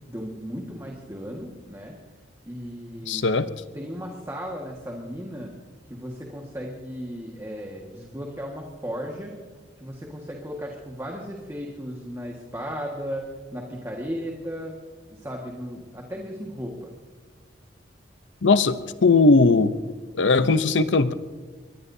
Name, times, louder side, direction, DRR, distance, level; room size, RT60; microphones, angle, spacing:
voice 1, 0.1-2.0 2.4-3.3 3.7-5.5 5.8-9.4 9.8-14.8 15.1-16.9, equal, 15° right, -1 dB, 1.7 m, -35 dB
voice 2, 3.1-3.5 18.4-19.7 20.1-21.1, left 3 dB, 80° left, 12 dB, 0.8 m, -19 dB
24.0 x 21.0 x 2.8 m, 1.4 s
head